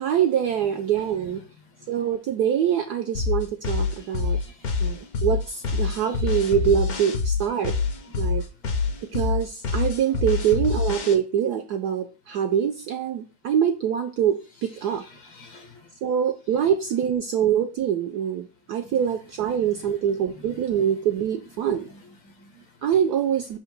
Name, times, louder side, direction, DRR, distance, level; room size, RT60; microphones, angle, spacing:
voice 1, 0.0-1.4 1.9-4.4 4.8-7.8 8.2-8.4 9.1-15.0 16.0-21.8 22.8-23.6, right 9 dB, 75° right, 6 dB, 0.9 m, -24 dB
voice 2, 1.0-1.5 4.1-4.7 5.1-6.6 7.9-8.3 10.3-10.5 14.6-15.8 18.8-19.1 19.5-22.9 23.4-23.5, left 2 dB, 70° left, 3 dB, 2.4 m, -50 dB
sound 1, 3.1-11.1, left 4 dB, 55° left, 1.2 m, -25 dB
6.9 x 2.8 x 5.2 m, 0.34 s
omnidirectional pair, 2.2 m